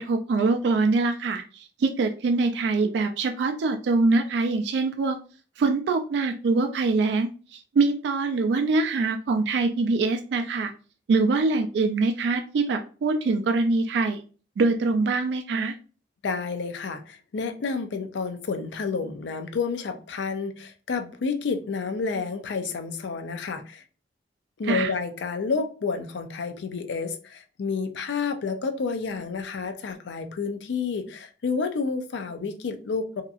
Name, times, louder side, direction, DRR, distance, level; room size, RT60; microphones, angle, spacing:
voice 1, 0.0-5.2 5.6-10.7 11.1-14.2 14.6-15.8 24.7-24.9, right 3 dB, 75° right, 0.3 m, -24 dB
voice 2, 16.2-23.8 24.6-33.2, left 4 dB, 80° left, 0.4 m, -30 dB
2.8 x 2.4 x 2.3 m
head